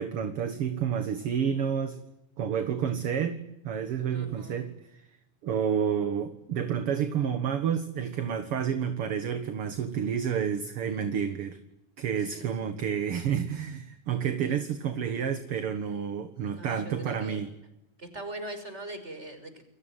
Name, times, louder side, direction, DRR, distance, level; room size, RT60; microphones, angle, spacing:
voice 1, 0.0-2.0 2.4-5.0 5.4-11.6 12.0-17.5, right 8 dB, 50° right, 9 dB, 2.0 m, -30 dB
voice 2, 4.1-4.7 12.3-12.7 16.5-17.4 18.0-19.6, right 1 dB, 20° right, 8 dB, 5.7 m, -41 dB
29.5 x 22.0 x 9.1 m, 0.88 s
omnidirectional pair, 4.0 m